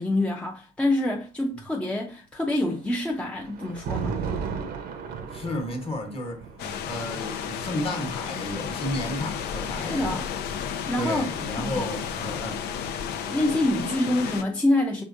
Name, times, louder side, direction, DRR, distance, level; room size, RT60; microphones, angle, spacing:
voice 1, 0.0-4.2 9.8-10.3 10.9-11.3 11.6-11.9 13.3-15.0, left 1 dB, 5° left, 0.5 m, -26 dB
Thunder, 2.6-9.8 10.9-12.6, right 6 dB, 65° right, 0.7 m, -36 dB
voice 2, 5.3-6.5 6.8-10.3 11.0-12.6 13.8-13.9, left 1 dB, 35° left, 1.2 m, -32 dB
sound 1, 6.6-14.4, left 8 dB, 75° left, 0.5 m, -33 dB
4.9 x 3.5 x 2.5 m
cardioid pair, 110°, 17 cm